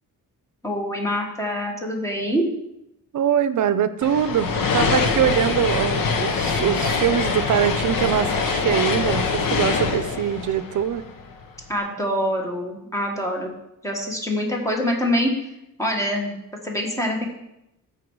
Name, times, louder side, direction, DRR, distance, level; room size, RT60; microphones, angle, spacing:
voice 1, 0.6-2.5 11.7-13.5 13.8-15.3 15.8-17.3, equal, 10° left, 0 dB, 1.5 m, -25 dB
voice 2, 3.1-11.0, right 9 dB, 65° right, 12 dB, 0.6 m, -23 dB
sound 1, 4.0-11.4, left 4 dB, 85° left, 1.1 m, -24 dB
13.5 x 4.7 x 4.7 m, 0.86 s
wide cardioid pair, 165°, 33 cm